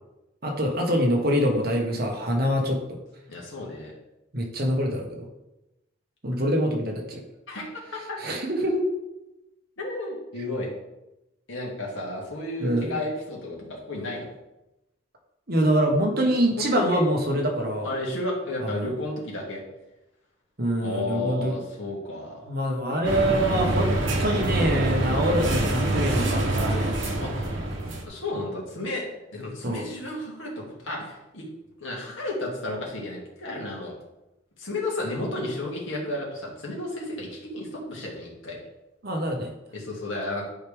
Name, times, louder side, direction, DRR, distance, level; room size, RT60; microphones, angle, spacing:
voice 1, 0.4-2.8 4.3-5.3 6.2-7.2 8.2-8.9 12.6-13.0 15.5-17.9 18.6-18.9 20.6-21.6 22.4-23.9 24.2-27.0 29.6-29.9 39.0-39.5, equal, 50° right, 1 dB, 1.3 m, -25 dB
voice 2, 3.3-3.9 7.5-7.6 7.9-8.2 9.8-10.7 11.5-14.3 16.6-17.0 17.8-19.6 20.8-22.4 27.2-27.5 28.0-29.0 29.3-31.5 31.8-33.9 34.6-38.6 39.7-40.5, left 1 dB, 80° left, -2 dB, 2.3 m, -32 dB
sound 1, 23.0-28.0, right 1 dB, 75° right, 1.3 m, -25 dB
10.5 x 4.7 x 3.6 m, 0.95 s
head